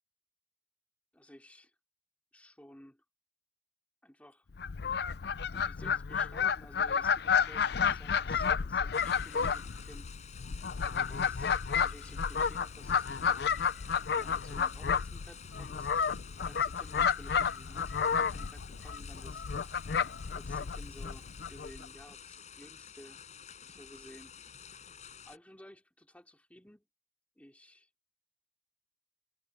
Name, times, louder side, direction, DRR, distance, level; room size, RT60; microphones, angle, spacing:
voice 1, 1.1-1.7 2.3-3.0 4.0-4.5 5.5-10.1 11.1-13.6 14.1-19.8 20.3-23.2 23.7-24.3 25.3-26.9 27.4-27.9, equal, 10° left, 2.7 m, -55 dB
Fowl, 4.5-21.9, left 6 dB, 65° left, 0.5 m, -31 dB
sound 1, 8.9-25.4, left 7 dB, 40° left, 4.9 m, -51 dB
head